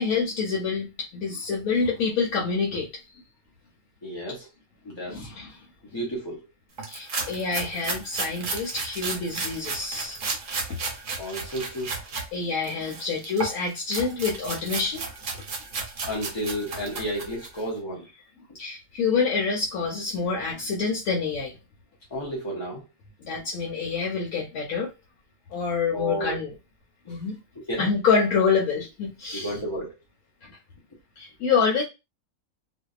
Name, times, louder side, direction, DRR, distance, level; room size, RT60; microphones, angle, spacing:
voice 1, 0.0-2.9 5.1-5.6 6.9-10.2 12.3-15.0 18.6-21.6 23.2-24.9 25.5-26.5 27.1-27.4 27.8-29.5 30.4-30.6 31.2-31.8, left 5 dB, 85° left, -2 dB, 1.1 m, -27 dB
voice 2, 4.0-4.5 4.8-5.3 5.9-6.4 11.2-11.9 16.1-18.1 22.1-22.8 25.9-26.4 27.0-27.2 27.6-27.9 29.3-29.9, equal, 45° left, -3 dB, 0.3 m, -32 dB
sound 1, 6.8-12.3 12.6-17.6, right 4 dB, 50° right, 0.7 m, -33 dB
2.6 x 2.2 x 2.3 m, 0.25 s
omnidirectional pair, 1.5 m